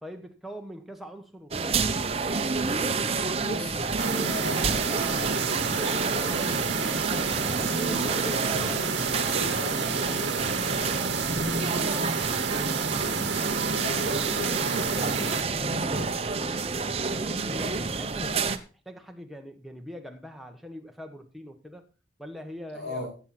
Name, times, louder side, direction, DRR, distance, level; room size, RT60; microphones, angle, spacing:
voice 1, 0.0-1.8 12.2-12.9 17.1-18.6 18.8-21.8 22.2-23.0, equal, ahead, 1.2 m, -42 dB
sound 1, 1.5-18.6, right 4 dB, 30° right, 0.8 m, -29 dB
voice 2, 3.4-6.7 7.7-10.8 13.6-15.3 15.6-16.1 22.7-23.1, equal, 60° left, 5.7 m, -38 dB
sound 2, 4.0-15.4, right 5 dB, 65° right, 1.2 m, -30 dB
15.0 x 7.7 x 4.3 m
head